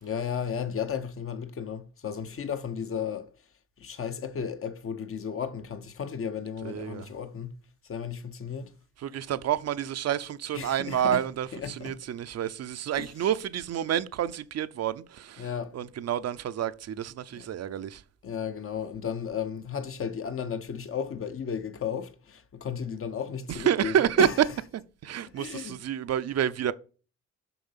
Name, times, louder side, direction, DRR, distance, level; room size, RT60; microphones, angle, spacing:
voice 1, 0.0-3.3 3.8-7.5 7.8-8.7 10.5-11.2 11.5-12.0 13.0-13.1 15.4-15.8 17.3-17.5 18.2-24.3 25.4-25.8, left 7 dB, 45° left, 1.0 m, -34 dB
voice 2, 6.6-7.1 9.0-15.5 15.7-18.0 23.5-24.3 25.0-26.7, right 9 dB, 55° right, 0.7 m, -29 dB
7.0 x 5.8 x 5.7 m
cardioid pair, 90°, 30 cm